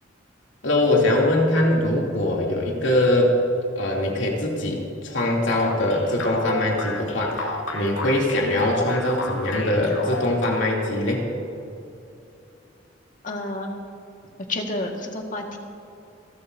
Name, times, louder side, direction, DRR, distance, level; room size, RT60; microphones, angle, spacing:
voice 1, 0.6-3.4 3.8-11.2, left 1 dB, 70° left, -2 dB, 3.0 m, -22 dB
sound 1, 5.6-10.9, left 2 dB, 90° left, 2.2 m, -32 dB
voice 2, 13.2-13.7 14.5-15.6, left 2 dB, 45° left, 1 dB, 1.9 m, -29 dB
29.5 x 13.0 x 2.8 m, 2.7 s
head